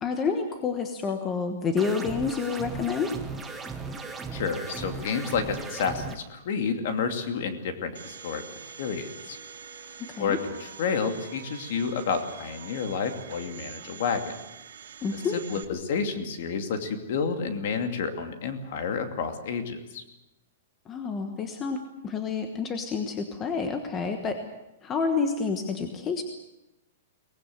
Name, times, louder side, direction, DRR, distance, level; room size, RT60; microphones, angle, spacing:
voice 1, 0.0-3.1 10.0-10.4 15.0-15.4 20.9-24.4 24.8-26.2, left 5 dB, 15° left, 6 dB, 1.2 m, -29 dB
sound 1, 1.8-6.2, right 4 dB, 5° right, 1.1 m, -37 dB
voice 2, 4.3-8.4 8.8-9.4 10.2-14.3 15.1-20.0, left 5 dB, 45° left, 7 dB, 2.6 m, -30 dB
Domestic sounds home sounds, 7.9-15.6, right 7 dB, 70° right, 2.8 m, -45 dB
23.5 x 19.0 x 7.9 m, 0.93 s
hypercardioid pair, 180°, 0 cm